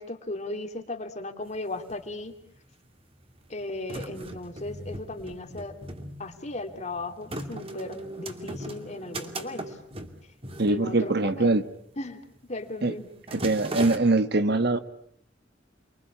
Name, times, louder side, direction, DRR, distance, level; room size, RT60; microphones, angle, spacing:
voice 1, 0.0-2.3 3.5-5.7 6.2-9.8 10.7-11.5 12.0-12.2 12.5-13.1, left 2 dB, 40° left, 6 dB, 2.9 m, -36 dB
sound 1, 1.5-1.6 1.7-2.6 3.2-11.5 11.8-12.1 12.4-12.7 13.0-14.0, right 1 dB, 30° right, 2.6 m, -38 dB
voice 2, 10.6-11.6 12.8-12.9 13.3-14.8, right 2 dB, 60° right, 11 dB, 1.5 m, -23 dB
29.5 x 23.0 x 8.6 m, 0.68 s
head